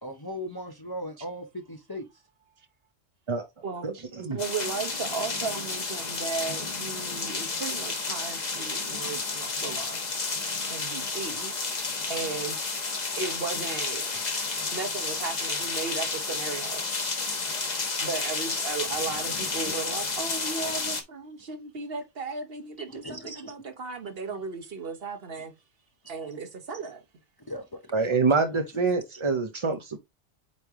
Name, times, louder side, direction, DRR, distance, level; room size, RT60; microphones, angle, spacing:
voice 1, 0.0-2.0 11.4-11.5 14.1-14.2 15.5-15.6 19.6-19.7 20.6-20.7 23.0-23.5 27.5-28.0, equal, 25° left, 0.7 m, -38 dB
voice 2, 3.6-10.0 10.7-11.5 12.1-12.6 13.2-14.1 14.7-16.9 18.0-25.5 26.1-27.0, right 4 dB, 55° right, 1.2 m, -35 dB
sound 1, 4.4-21.0, left 4 dB, 40° left, 1.2 m, -31 dB
voice 3, 27.9-30.0, right 4 dB, 35° right, 0.5 m, -25 dB
8.3 x 3.2 x 3.6 m
omnidirectional pair, 1.2 m